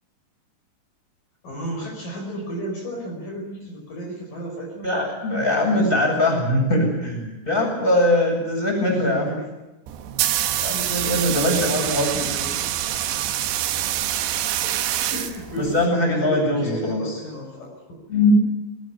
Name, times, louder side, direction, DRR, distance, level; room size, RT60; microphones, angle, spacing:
voice 1, 1.4-4.9 5.3-6.4 8.9-9.5 11.0-12.7 15.1-18.1, equal, 50° left, 0 dB, 6.6 m, -33 dB
voice 2, 4.8-9.4 10.6-12.4 15.6-17.2 18.1-18.3, left 1 dB, 10° left, 1 dB, 8.0 m, -22 dB
sound 1, 9.9-15.9, right 12 dB, 75° right, 3.2 m, -25 dB
21.0 x 20.5 x 9.5 m, 1.1 s
omnidirectional pair, 5.3 m